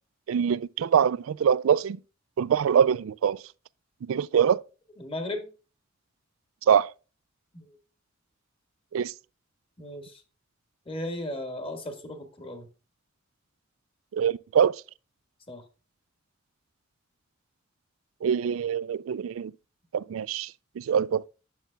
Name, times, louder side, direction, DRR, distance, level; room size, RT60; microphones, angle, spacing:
voice 1, 0.3-2.0 2.4-3.4 4.1-4.6 6.7-6.9 8.9-9.1 14.1-14.8 18.2-19.5 19.9-20.5 20.8-21.3, right 8 dB, 80° right, 0.3 m, -24 dB
voice 2, 5.0-5.5 7.5-7.8 9.8-10.2 10.8-12.7 15.5-15.6, left 1 dB, 25° left, 1.6 m, -36 dB
9.2 x 6.8 x 2.3 m
head